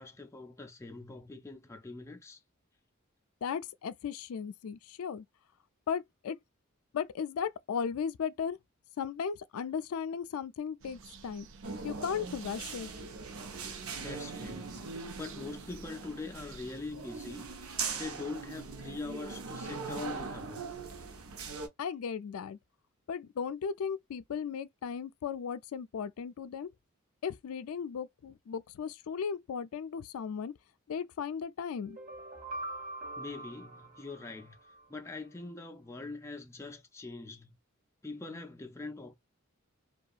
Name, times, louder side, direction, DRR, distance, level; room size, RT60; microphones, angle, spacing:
voice 1, 0.0-2.4 14.0-20.7 33.2-34.6 34.9-37.6 38.0-39.1, left 3 dB, 15° left, 0.4 m, -43 dB
voice 2, 3.4-5.2 5.9-6.4 6.9-8.6 9.0-11.5 11.8-12.9 21.8-22.6 23.1-26.7 27.2-30.5 30.9-32.0, left 7 dB, 85° left, 0.4 m, -36 dB
sound 1, 10.8-16.8, right 5 dB, 60° right, 0.4 m, -53 dB
sound 2, 11.6-21.7, right 4 dB, 85° right, 0.7 m, -41 dB
sound 3, 31.8-34.9, right 2 dB, 40° right, 0.8 m, -43 dB
2.8 x 2.3 x 2.3 m
head